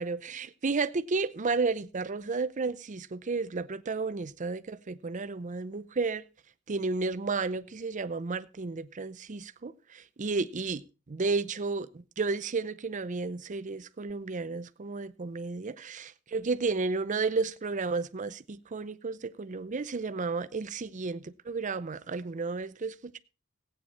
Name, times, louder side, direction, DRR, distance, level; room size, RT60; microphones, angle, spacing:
voice 1, 0.0-6.2 6.7-10.8 11.1-23.2, right 4 dB, 35° right, 0.6 m, -32 dB
15.5 x 8.9 x 4.2 m
head